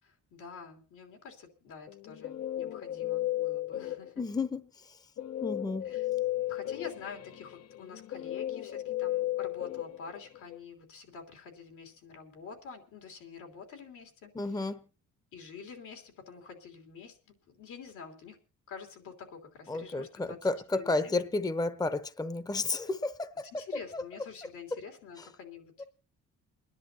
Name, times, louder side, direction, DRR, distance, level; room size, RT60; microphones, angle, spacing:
voice 1, 0.0-4.2 5.8-6.1 6.5-14.7 15.3-18.4 18.7-20.4 20.7-21.3 23.6-25.9, left 6 dB, 85° left, 3.2 m, -47 dB
Guitar, 1.9-4.4 5.2-10.6, left 14 dB, 55° left, 0.6 m, -35 dB
voice 2, 4.2-5.0 5.4-5.9 14.3-14.8 19.7-23.5 23.9-24.0 25.2-25.3 25.8-25.9, left 3 dB, 15° left, 0.8 m, -32 dB
29.5 x 10.5 x 2.8 m
cardioid pair, 90°, 30 cm